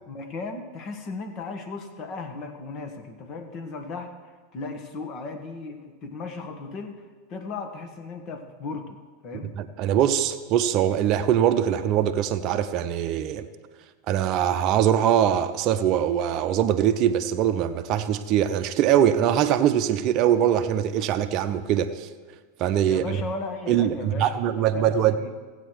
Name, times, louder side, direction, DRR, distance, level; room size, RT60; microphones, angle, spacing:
voice 1, 0.1-7.0 7.3-9.6 22.8-24.4 24.7-25.3, left 3 dB, 40° left, 6 dB, 1.4 m, -36 dB
voice 2, 9.6-13.5 14.1-22.1 22.6-23.2 23.7-25.3, right 10 dB, 45° right, 7 dB, 0.6 m, -22 dB
15.5 x 8.1 x 4.6 m, 1.5 s
hypercardioid pair, 90°, 0 cm